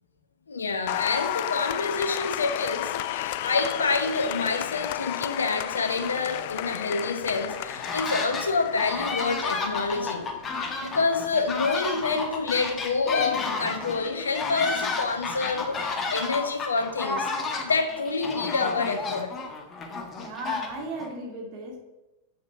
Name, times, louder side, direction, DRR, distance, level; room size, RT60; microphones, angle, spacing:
voice 1, 0.5-10.3 10.8-17.3 17.6-19.3, left 4 dB, 75° left, 7 dB, 1.0 m, -27 dB
Applause, 0.9-16.2, left 13 dB, 50° left, 0.4 m, -34 dB
sound 1, 7.5-8.5 8.8-21.1, left 4 dB, 25° left, 1.5 m, -32 dB
voice 2, 20.2-21.8, right 2 dB, 40° right, 1 dB, 2.3 m, -36 dB
7.7 x 6.7 x 5.8 m, 0.97 s
figure-of-eight pair, 90°, 0 cm